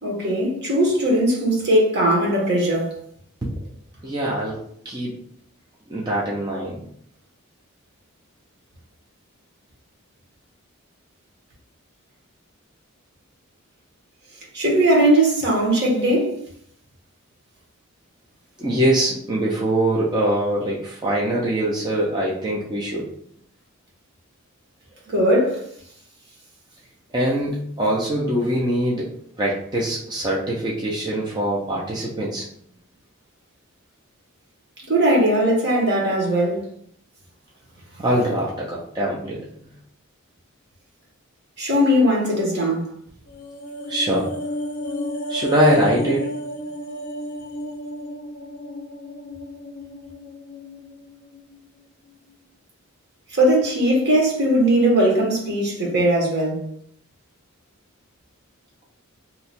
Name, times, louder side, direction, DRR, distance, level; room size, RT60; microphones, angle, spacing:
voice 1, 0.0-2.9 14.5-16.4 25.1-25.6 34.9-36.6 41.6-42.9 53.3-56.6, right 1 dB, 50° right, 1.1 m, -19 dB
voice 2, 4.0-4.6 4.8-5.2 5.9-6.8 18.6-23.1 27.1-29.1 29.4-32.4 38.0-39.4 43.9-44.3 45.3-46.3, right 1 dB, 20° right, 0.5 m, -23 dB
sound 1, 43.3-51.7 52.0-52.2, equal, 45° left, 0.5 m, -32 dB
2.8 x 2.3 x 4.1 m
head